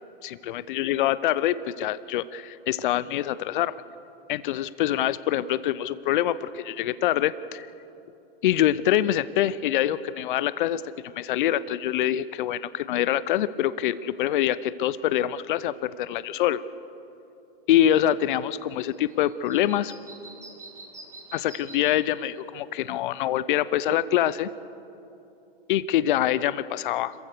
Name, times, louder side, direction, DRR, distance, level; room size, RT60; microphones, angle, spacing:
voice 1, 0.2-3.8 4.3-7.7 8.4-16.6 17.7-19.9 21.3-24.5 25.7-27.1, left 12 dB, 55° left, 16 dB, 0.7 m, -25 dB
sound 1, 18.0-23.5, right 3 dB, 10° right, 1.8 m, -49 dB
26.5 x 15.0 x 6.8 m, 2.9 s
hypercardioid pair, 135°, 31 cm